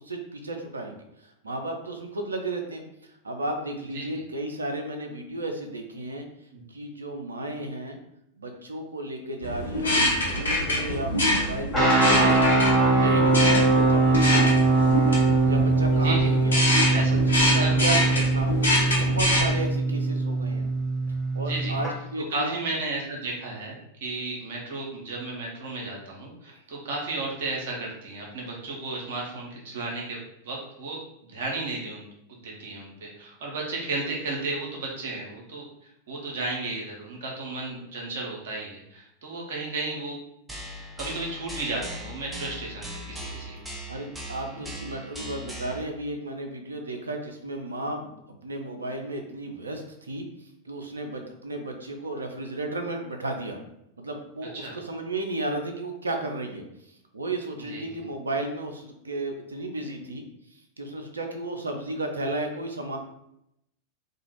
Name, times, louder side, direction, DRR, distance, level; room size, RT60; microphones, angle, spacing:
voice 1, 0.0-2.8 3.2-6.3 6.7-8.0 8.4-14.9 15.5-16.6 16.9-20.7 21.3-22.6 26.5-26.6 43.9-48.1 48.4-50.2 50.6-53.6 54.0-56.6 57.1-60.2 60.8-63.0, right 2 dB, 75° right, 4 dB, 0.4 m, -33 dB
sound 1, 9.4-19.5, left 1 dB, 70° left, 0.6 m, -26 dB
sound 2, 11.7-21.9, right 3 dB, 10° left, 1.1 m, -22 dB
voice 2, 17.4-17.8 21.4-21.8 22.3-23.8 24.0-30.2 30.4-32.0 32.3-35.7 36.1-40.2 41.0-43.6 44.5-44.6 45.0-45.1 54.6-54.7 57.7-57.9, right 2 dB, 55° right, -2 dB, 0.8 m, -33 dB
sound 3, 40.5-45.8, equal, 5° right, 0.5 m, -39 dB
2.4 x 2.3 x 3.0 m, 0.80 s
figure-of-eight pair, 90°, 0 cm